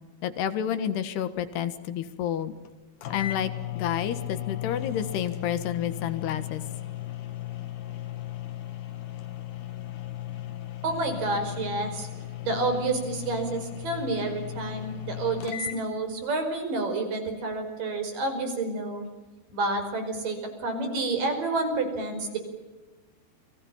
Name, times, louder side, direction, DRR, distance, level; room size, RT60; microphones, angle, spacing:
voice 1, 0.2-2.5 3.1-6.6, left 9 dB, 80° left, 11 dB, 3.6 m, -30 dB
sound 1, 2.7-2.8 3.0-15.8, left 13 dB, 60° left, 2.8 m, -36 dB
voice 2, 10.8-12.1 12.4-19.1 19.5-22.4, right 2 dB, 55° right, 7 dB, 6.5 m, -29 dB
29.5 x 24.0 x 7.4 m, 1.2 s
omnidirectional pair, 4.7 m